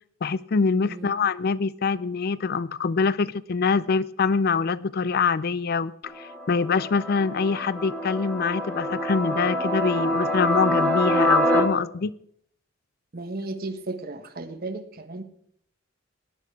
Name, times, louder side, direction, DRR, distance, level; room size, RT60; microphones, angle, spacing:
voice 1, 0.2-12.1, left 5 dB, 50° left, 18 dB, 0.4 m, -24 dB
sound 1, 6.1-11.6, equal, 5° left, 2.2 m, -25 dB
voice 2, 13.1-15.2, right 2 dB, 50° right, 7 dB, 1.4 m, -34 dB
17.0 x 10.5 x 4.8 m, 0.67 s
head